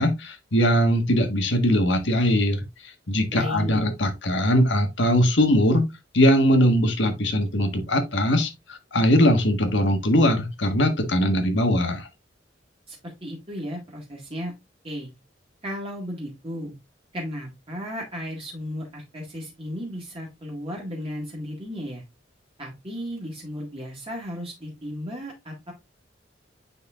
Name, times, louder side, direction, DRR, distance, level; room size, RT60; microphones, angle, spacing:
voice 1, 0.0-5.9 6.1-12.1, equal, 70° left, 1.5 m, -21 dB
voice 2, 3.3-3.8 12.9-14.5 14.8-15.1 15.6-16.7 17.1-22.0 22.6-25.7, equal, 30° right, 1.8 m, -34 dB
9.5 x 4.3 x 2.4 m
head